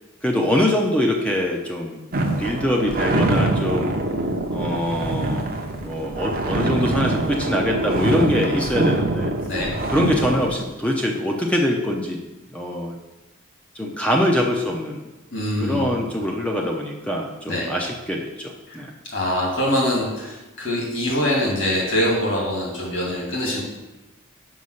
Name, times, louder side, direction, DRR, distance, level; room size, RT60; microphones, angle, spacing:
voice 1, 0.2-2.0 2.4-4.0 4.5-5.5 5.8-9.3 9.9-12.2 12.5-13.0 13.7-15.0 15.6-18.9, left 1 dB, 5° left, 0 dB, 0.6 m, -23 dB
sound 1, 2.1-10.7, right 2 dB, 40° right, 0.7 m, -24 dB
voice 2, 15.3-15.9 17.5-17.7 18.7-23.6, left 1 dB, 55° left, -2 dB, 2.3 m, -24 dB
5.5 x 5.3 x 6.4 m, 1.1 s
head